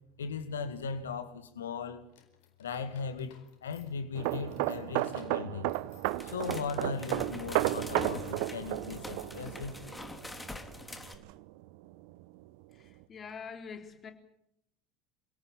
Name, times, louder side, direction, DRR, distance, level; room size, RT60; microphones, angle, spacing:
voice 1, 0.2-2.1 2.6-3.3 3.6-5.7 6.2-9.8, left 5 dB, 80° left, 2.1 m, -38 dB
sound 1, 2.1-6.9, left 9 dB, 65° left, 4.3 m, -61 dB
sound 2, 4.1-11.6 11.9-12.2, right 17 dB, 60° right, 0.9 m, -33 dB
sound 3, 6.0-11.2, left 2 dB, 10° left, 3.0 m, -45 dB
voice 2, 12.7-14.1, left 6 dB, 35° left, 3.8 m, -45 dB
27.5 x 17.5 x 8.7 m
figure-of-eight pair, 70°, 0 cm